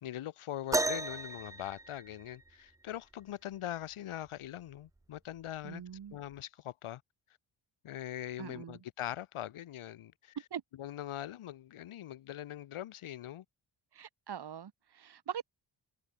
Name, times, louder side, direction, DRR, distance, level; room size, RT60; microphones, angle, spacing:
voice 1, 0.0-5.8 6.1-7.0 7.8-10.4 10.7-13.5, left 12 dB, 90° left, 1.7 m, -42 dB
sound 1, 0.7-2.6 4.3-4.4 5.2-5.4 6.3-6.4, right 2 dB, 10° right, 0.3 m, -34 dB
voice 2, 5.6-6.2 8.4-8.8 10.5-10.6 13.9-15.4, right 8 dB, 55° right, 2.0 m, -42 dB
cardioid pair, 105°, 48 cm